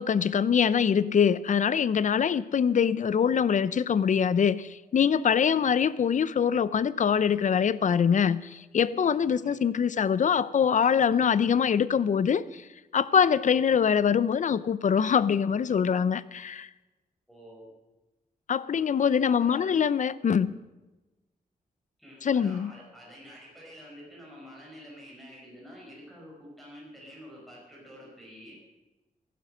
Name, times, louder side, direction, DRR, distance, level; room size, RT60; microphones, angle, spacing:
voice 1, 0.0-12.6 12.9-16.7 18.5-20.5 22.2-22.7, left 7 dB, 55° left, 17 dB, 0.6 m, -24 dB
voice 2, 17.3-17.7 19.4-19.7 22.0-28.7, equal, ahead, -4 dB, 5.1 m, -48 dB
15.5 x 11.0 x 6.4 m, 1.1 s
wide cardioid pair, 120°, 15 cm